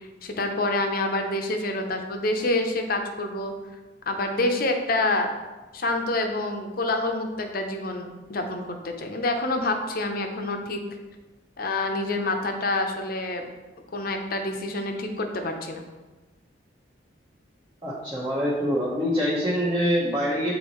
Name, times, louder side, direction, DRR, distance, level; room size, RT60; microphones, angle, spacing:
voice 1, 0.0-3.5 4.1-5.3 5.7-10.8 11.6-13.5 13.9-15.8, left 2 dB, 50° left, 4 dB, 0.7 m, -27 dB
voice 2, 17.8-20.5, equal, 20° right, -7 dB, 1.0 m, -25 dB
8.3 x 4.0 x 3.1 m, 1.2 s
head